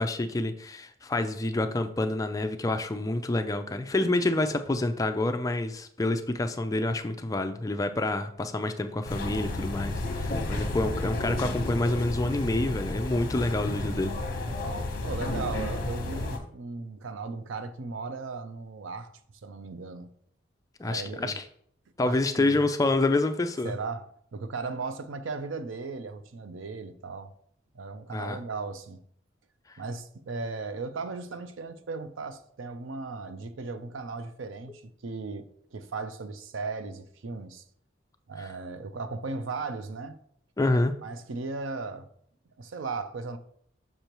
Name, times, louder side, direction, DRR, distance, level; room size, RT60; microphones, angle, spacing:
voice 1, 0.0-14.1 20.8-21.4 22.0-23.7 28.1-28.4 38.4-38.5 40.6-40.9, left 2 dB, 15° left, 0.3 m, -28 dB
sound 1, 9.0-16.4, left 2 dB, 45° left, 0.9 m, -32 dB
voice 2, 15.0-19.1 19.4-20.1 20.8-21.4 22.0-22.6 23.6-27.3 27.7-29.0 29.8-35.5 35.7-37.6 38.3-40.2 41.0-42.1 42.6-43.4, right 4 dB, 85° right, 0.5 m, -36 dB
6.6 x 5.5 x 3.0 m
head